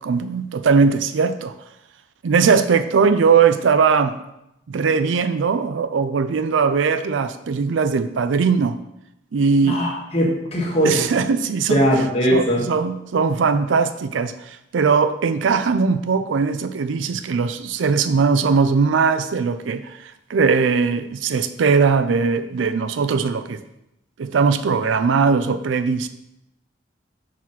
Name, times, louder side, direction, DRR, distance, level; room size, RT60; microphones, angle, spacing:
voice 1, 0.0-1.5 2.2-4.2 4.7-8.8 9.3-9.8 10.8-11.8 12.3-23.6 24.2-26.1, right 5 dB, 85° right, 11 dB, 0.4 m, -19 dB
voice 2, 9.6-11.0 11.7-12.6, equal, 35° left, -2 dB, 1.3 m, -19 dB
4.7 x 3.9 x 5.6 m, 0.84 s
head